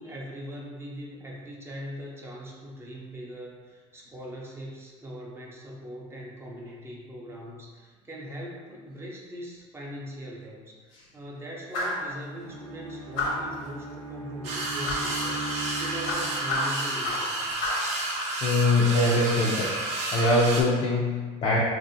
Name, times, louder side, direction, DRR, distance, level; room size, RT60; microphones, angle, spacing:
voice 1, 0.0-17.7, equal, 15° right, -3 dB, 0.5 m, -41 dB
sound 1, 11.7-12.1 13.2-13.5 14.9-15.1 16.1-17.3 17.6-17.9, left 2 dB, 75° left, 0.9 m, -29 dB
Bowed string instrument, 12.4-16.8, right 3 dB, 80° right, 0.7 m, -39 dB
sound 2, 14.4-20.6, right 2 dB, 50° right, 0.7 m, -31 dB
voice 2, 18.4-19.8 20.1-21.6, left 2 dB, 45° left, -5 dB, 0.5 m, -23 dB
2.9 x 2.6 x 2.6 m, 1.5 s
supercardioid pair, 115°, 15 cm